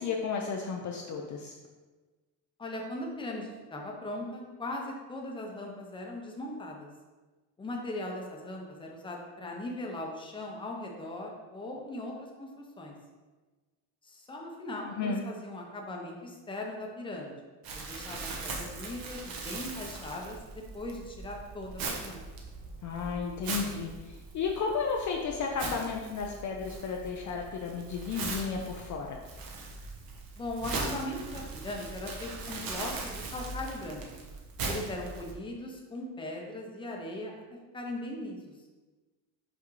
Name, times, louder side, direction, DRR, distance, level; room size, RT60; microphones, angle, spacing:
voice 1, 0.0-1.5 14.8-15.2 22.8-29.2, left 5 dB, 45° left, 1 dB, 0.6 m, -33 dB
voice 2, 2.6-6.9 7.6-12.9 14.0-17.4 17.7-22.2 30.4-34.0 34.6-37.3 37.7-38.5, left 1 dB, 10° left, 0 dB, 0.8 m, -39 dB
Crumpling crinkling, 17.6-35.3, right 3 dB, 55° right, 1.1 m, -40 dB
5.9 x 5.3 x 3.2 m, 1.3 s
cardioid pair, 155°, 43 cm